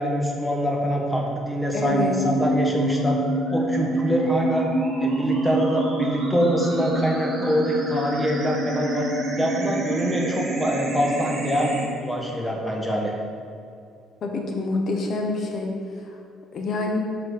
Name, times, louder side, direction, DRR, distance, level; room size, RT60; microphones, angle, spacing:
voice 1, 0.0-3.2 3.5-4.7 5.0-9.1 9.4-13.1, equal, 5° left, -2 dB, 1.3 m, -24 dB
voice 2, 1.7-2.2 14.2-15.7 16.5-17.0, left 3 dB, 55° left, 2 dB, 1.0 m, -26 dB
sound 1, 1.8-11.8, right 1 dB, 55° right, 1.6 m, -27 dB
7.6 x 4.0 x 4.8 m, 2.5 s
cardioid pair, 90°, 0 cm